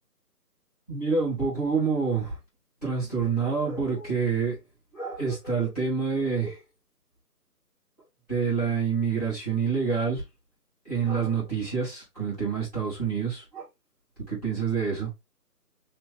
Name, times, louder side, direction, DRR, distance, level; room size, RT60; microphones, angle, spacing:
voice 1, 0.9-2.4 2.8-4.6 4.9-6.6 8.3-10.2 10.8-13.6 14.3-15.1, right 5 dB, ahead, 1.6 m, -27 dB
4.3 x 3.0 x 3.1 m
hypercardioid pair, 180°, 47 cm